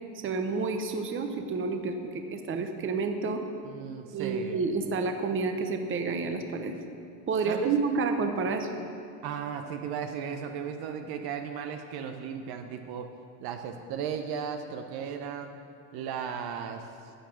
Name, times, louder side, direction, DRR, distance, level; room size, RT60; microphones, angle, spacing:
voice 1, 0.2-3.4 4.1-6.7 7.3-8.7, right 4 dB, 25° right, 6 dB, 0.9 m, -29 dB
voice 2, 3.6-4.6 7.5-7.7 9.2-13.1 13.4-15.6 15.9-16.9, right 7 dB, 55° right, 6 dB, 0.9 m, -36 dB
11.0 x 8.4 x 6.3 m, 2.5 s
supercardioid pair, 120°, 46 cm